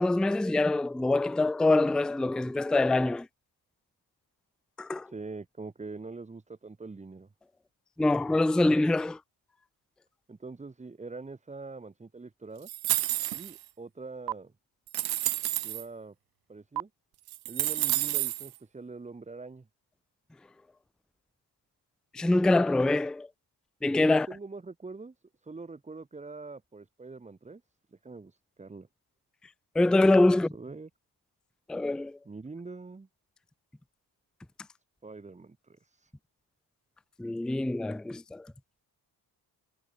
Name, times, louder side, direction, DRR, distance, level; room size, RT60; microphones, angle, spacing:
voice 1, 0.0-3.3 4.8-5.1 8.0-9.2 22.1-23.3 23.8-24.3 29.8-30.5 31.7-32.2 37.2-38.5, left 2 dB, ahead, 0.4 m, -24 dB
voice 2, 5.1-7.3 10.3-12.7 13.3-14.5 15.6-16.1 16.5-16.9 17.5-19.7 24.0-25.1 25.4-27.6 27.9-28.9 30.3-30.9 32.2-33.1 35.0-36.1, right 3 dB, 20° right, 6.1 m, -44 dB
sound 1, 12.7-13.6 14.3-14.4 14.9-15.8 16.8-16.9 17.3-18.5, right 16 dB, 70° right, 0.9 m, -29 dB
cardioid pair, 160°, 38 cm